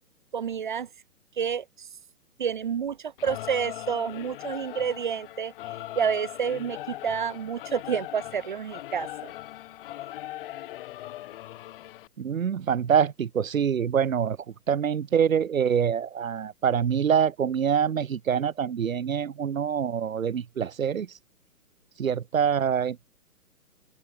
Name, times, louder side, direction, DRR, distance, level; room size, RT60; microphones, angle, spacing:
voice 1, 0.3-0.9 1.4-1.9 2.4-9.3, right 7 dB, 35° right, 0.5 m, -29 dB
Singing / Musical instrument, 3.2-12.1, left 15 dB, 35° left, 2.9 m, -40 dB
voice 2, 12.2-14.4 14.7-21.1 22.0-23.1, right 8 dB, 60° right, 1.5 m, -25 dB
open air
figure-of-eight pair, 125°, 45 cm